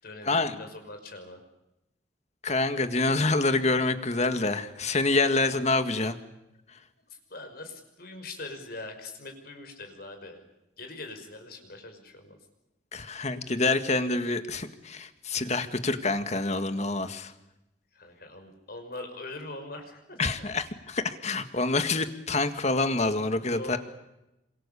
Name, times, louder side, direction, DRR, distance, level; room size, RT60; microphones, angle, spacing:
voice 1, 0.0-1.4 7.1-10.5 10.8-12.4 17.9-20.2 23.4-23.8, left 2 dB, 55° left, 5 dB, 5.9 m, -42 dB
voice 2, 2.4-6.2 12.9-17.3 20.2-23.8, left 3 dB, 40° left, 9 dB, 2.0 m, -27 dB
28.5 x 26.5 x 7.1 m, 0.91 s
head